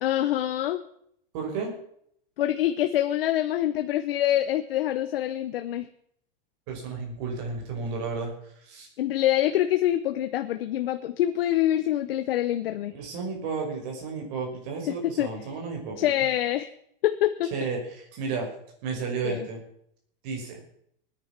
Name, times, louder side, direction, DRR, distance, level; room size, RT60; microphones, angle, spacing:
voice 1, 0.0-0.8 2.4-5.9 9.0-12.9 14.9-15.3 16.0-16.7 17.0-17.5 19.2-19.5, left 12 dB, 70° left, 8 dB, 1.0 m, -25 dB
voice 2, 1.3-1.7 6.7-8.3 8.6-8.9 12.9-16.1 17.5-18.5 18.8-19.6 20.2-20.6, right 4 dB, 40° right, 1 dB, 5.6 m, -32 dB
19.5 x 10.0 x 6.0 m, 0.70 s
supercardioid pair, 175°, 29 cm